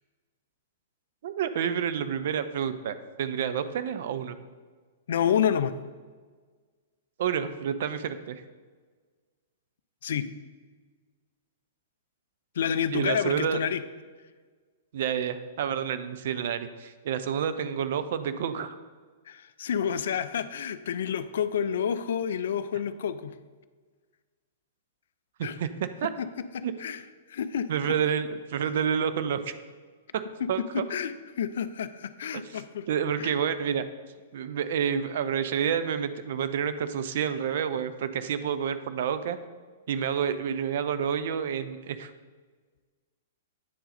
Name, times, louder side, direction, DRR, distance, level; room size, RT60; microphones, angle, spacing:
voice 1, 1.2-4.4 7.2-8.4 12.9-13.6 14.9-18.8 25.4-26.1 26.6-26.7 27.7-29.5 30.1-30.2 30.5-30.8 32.3-32.6 32.9-33.8 34.3-39.4 39.9-42.1, right 8 dB, 55° right, 11 dB, 0.4 m, -29 dB
voice 2, 5.1-5.7 10.0-10.3 12.6-13.8 19.3-23.3 25.4-25.6 26.2-26.3 26.5-27.0 27.3-27.7 30.4-32.9 33.2-33.4, left 8 dB, 60° left, 13 dB, 0.3 m, -29 dB
9.2 x 3.8 x 4.1 m, 1.5 s
figure-of-eight pair, 105°, 0 cm